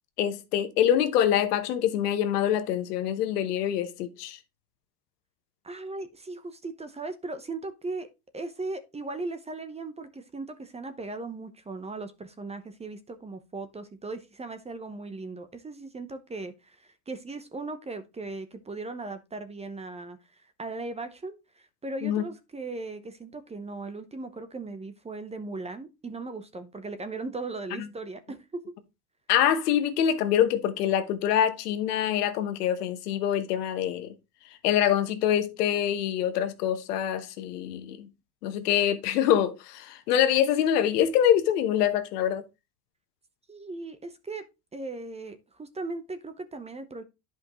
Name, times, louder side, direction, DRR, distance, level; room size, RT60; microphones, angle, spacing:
voice 1, 0.2-4.4 22.0-22.2 27.8-27.9 29.3-34.1 34.6-38.1 38.4-42.4, left 10 dB, 85° left, 1.2 m, -25 dB
voice 2, 5.6-8.1 8.3-20.2 20.6-28.7 43.5-44.5 44.7-47.0, right 3 dB, 15° right, 0.8 m, -38 dB
10.5 x 5.3 x 3.0 m
supercardioid pair, 110°, 45 cm